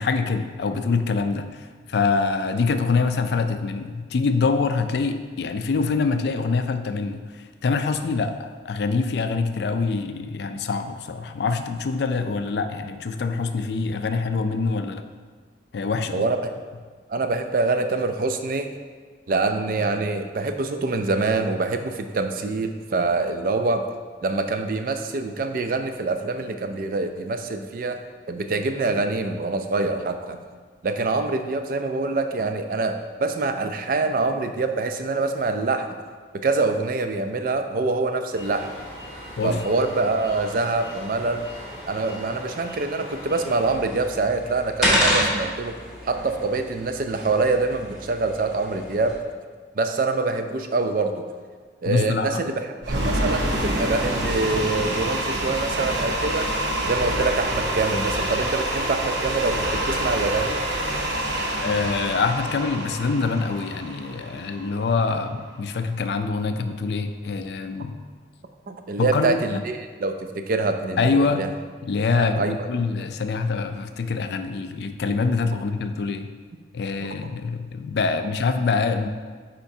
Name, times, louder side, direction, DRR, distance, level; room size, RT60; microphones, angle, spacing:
voice 1, 0.0-15.0 15.7-16.3 39.4-39.6 51.8-52.5 61.6-68.0 69.0-69.6 71.0-71.5 71.8-76.3 76.7-79.1, left 4 dB, 65° left, 8 dB, 0.4 m, -25 dB
voice 2, 17.1-18.7 19.3-23.8 24.2-28.0 28.3-30.4 30.8-35.9 36.3-38.7 39.4-41.5 41.9-45.7 46.0-49.2 49.7-51.3 51.8-56.5 56.8-60.6 68.7-71.5 72.1-72.7 77.0-77.2, right 3 dB, 50° right, 7 dB, 0.4 m, -25 dB
sound 1, 38.3-43.7, equal, 35° right, 1.6 m, -40 dB
sound 2, 43.7-49.2, equal, ahead, 1.6 m, -28 dB
sound 3, 52.8-65.0, right 1 dB, 80° right, 0.8 m, -27 dB
8.6 x 4.4 x 2.7 m, 1.5 s
head